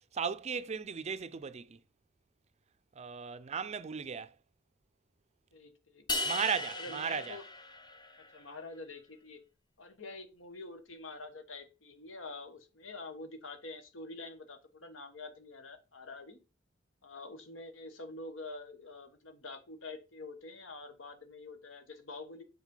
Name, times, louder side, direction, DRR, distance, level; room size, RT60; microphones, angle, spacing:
voice 1, 0.1-1.8 3.0-4.3 6.2-7.4, right 6 dB, 35° right, 0.4 m, -36 dB
voice 2, 5.5-6.0 6.7-7.4 8.3-9.4 9.8-16.4 17.0-22.4, left 3 dB, 75° left, 1.3 m, -46 dB
sound 1, 6.1-8.4, left 2 dB, 20° left, 0.7 m, -37 dB
7.3 x 4.1 x 5.4 m
head